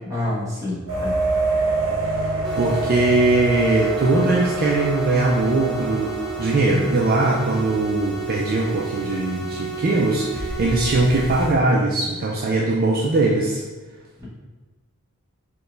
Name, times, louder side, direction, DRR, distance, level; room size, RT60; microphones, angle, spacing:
voice 1, 0.0-1.2 14.2-14.3, left 1 dB, 15° right, -8 dB, 1.0 m, -28 dB
sound 1, 0.9-11.6, right 2 dB, 60° right, 1.0 m, -28 dB
sound 2, 2.4-11.4, right 5 dB, 5° left, 0.7 m, -32 dB
voice 2, 2.6-6.1 6.4-13.6, right 2 dB, 40° right, -3 dB, 0.3 m, -20 dB
4.5 x 2.2 x 3.2 m, 1.3 s
head